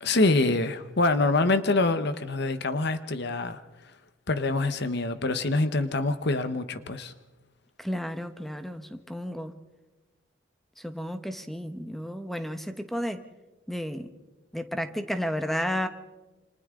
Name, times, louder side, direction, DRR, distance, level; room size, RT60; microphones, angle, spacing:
voice 1, 0.0-3.6 4.3-7.1, left 2 dB, 60° left, 11 dB, 1.1 m, -25 dB
voice 2, 7.8-9.5 10.8-13.2 13.7-14.1 14.5-15.9, equal, ahead, 8 dB, 1.1 m, -32 dB
28.5 x 26.0 x 3.8 m, 1.2 s
head